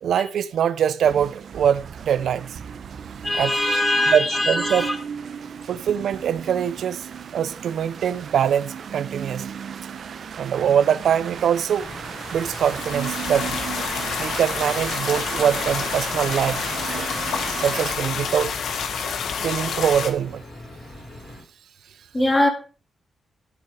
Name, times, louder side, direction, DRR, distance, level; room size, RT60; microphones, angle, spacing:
voice 1, 0.0-2.6 3.3-4.9 5.7-7.1 7.3-9.5 10.4-11.9 12.3-13.6 14.2-17.1 17.6-18.6 19.4-20.4, right 8 dB, 75° right, 0.7 m, -23 dB
sound 1, 1.0-17.9, right 7 dB, 55° right, 1.0 m, -35 dB
voice 2, 3.2-5.0 22.1-22.5, left 1 dB, 15° left, 2.6 m, -21 dB
sound 2, 11.7-20.1, left 6 dB, 90° left, 1.7 m, -29 dB
sound 3, 11.8-21.4, left 1 dB, 45° left, 6.2 m, -42 dB
13.5 x 7.8 x 4.9 m
wide cardioid pair, 155°, 0 cm